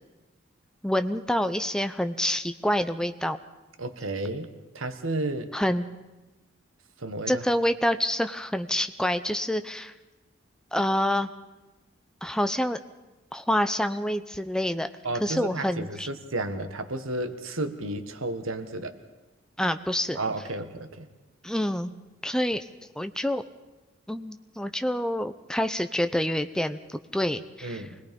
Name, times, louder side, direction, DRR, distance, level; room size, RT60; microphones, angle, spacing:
voice 1, 0.8-3.4 5.5-5.8 7.3-9.9 10.7-11.3 12.2-12.8 13.3-14.9 15.2-16.1 19.6-20.2 21.4-21.9 22.2-22.6 23.0-23.4 24.1-27.8, equal, 5° left, 9 dB, 0.7 m, -27 dB
voice 2, 3.8-5.5 7.0-7.4 15.0-18.9 20.1-21.1 27.6-28.0, right 2 dB, 85° right, 8 dB, 1.7 m, -32 dB
25.0 x 20.0 x 5.4 m, 1.1 s
head